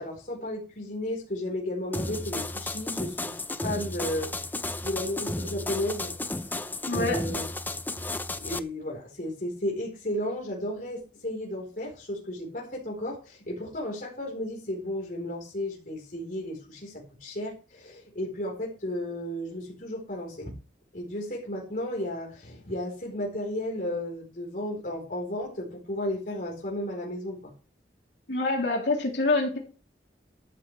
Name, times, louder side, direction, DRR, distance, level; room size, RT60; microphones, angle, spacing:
voice 1, 0.0-3.4 3.6-4.3 4.8-6.1 6.5-6.6 6.9-7.4 8.1-20.5 20.9-27.5, left 1 dB, 50° left, -1 dB, 4.3 m, -34 dB
sound 1, 1.9-8.6, left 2 dB, 10° left, 0.6 m, -33 dB
voice 2, 6.9-7.2 28.3-29.6, left 2 dB, 75° left, 0 dB, 3.3 m, -26 dB
13.0 x 12.5 x 3.4 m, 0.36 s
head